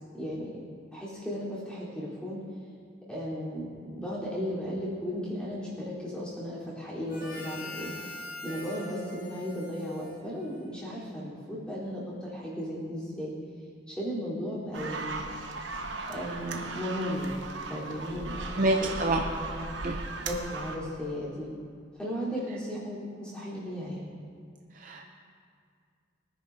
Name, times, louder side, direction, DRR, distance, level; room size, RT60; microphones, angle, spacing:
voice 1, 0.1-0.5 0.9-2.4 3.1-13.3 13.9-15.6 16.1-17.3 17.7-18.9 19.2-21.5 22.0-24.1, equal, 5° left, -9 dB, 3.9 m, -36 dB
Harmonica, 7.1-10.9, left 1 dB, 45° left, 1.7 m, -43 dB
sound 1, 14.7-20.8, right 3 dB, 80° right, 1.1 m, -37 dB
voice 2, 18.6-19.2 19.8-20.0 24.7-25.1, right 2 dB, 45° right, 1 dB, 0.6 m, -27 dB
23.5 x 10.0 x 2.8 m, 2.2 s
head